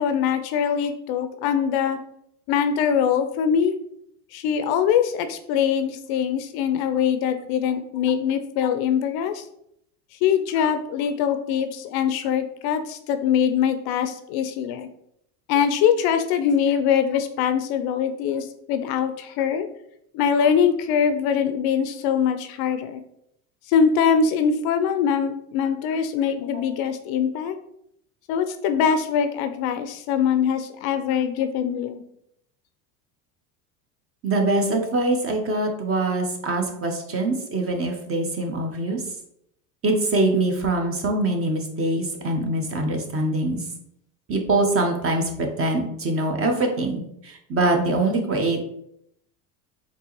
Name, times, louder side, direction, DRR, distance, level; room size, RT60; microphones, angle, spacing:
voice 1, 0.0-2.0 2.5-3.8 4.3-9.4 10.2-14.9 15.5-19.7 20.1-23.0 23.7-27.6 28.3-32.0, left 7 dB, 55° left, 8 dB, 0.5 m, -23 dB
voice 2, 34.2-39.0 39.8-43.6 44.3-48.6, right 2 dB, 30° right, 3 dB, 0.8 m, -23 dB
4.5 x 2.9 x 2.9 m, 0.74 s
hypercardioid pair, 90°, 47 cm